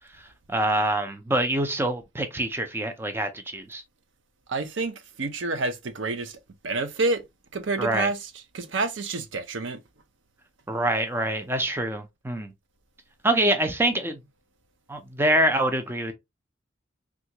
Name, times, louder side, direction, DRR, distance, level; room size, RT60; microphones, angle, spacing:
voice 1, 0.5-3.8 7.8-8.1 10.7-12.5 13.2-14.2 14.9-16.1, right 1 dB, 10° right, 0.5 m, -25 dB
voice 2, 4.5-6.4 6.6-7.2 7.5-8.2 8.5-9.8, right 3 dB, 90° right, 0.6 m, -28 dB
3.6 x 2.4 x 2.8 m
head